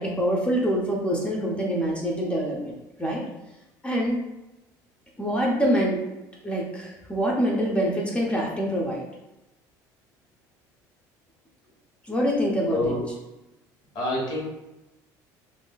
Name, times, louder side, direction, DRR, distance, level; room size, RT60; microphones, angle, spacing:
voice 1, 0.0-3.2 3.8-4.2 5.2-6.0 6.4-9.0 12.0-13.0, equal, 15° left, -2 dB, 0.6 m, -25 dB
voice 2, 12.7-13.0 13.9-14.4, left 1 dB, 60° left, -3 dB, 1.2 m, -26 dB
3.5 x 2.6 x 2.3 m, 0.98 s
cardioid pair, 110°, 9 cm